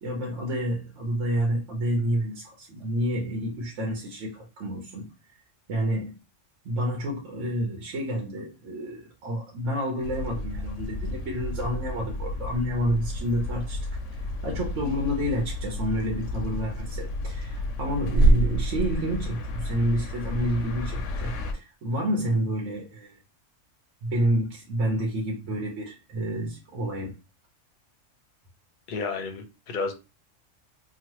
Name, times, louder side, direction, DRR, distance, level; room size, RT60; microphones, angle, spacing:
voice 1, 0.0-5.1 5.7-6.2 6.6-13.8 14.1-14.2 14.4-23.2 24.0-27.1, equal, 80° right, 1.1 m, -29 dB
sound 1, 10.0-21.5, equal, 85° left, 0.9 m, -29 dB
voice 2, 28.9-29.9, left 4 dB, 50° left, 0.7 m, -31 dB
3.0 x 2.2 x 2.9 m
omnidirectional pair, 1.3 m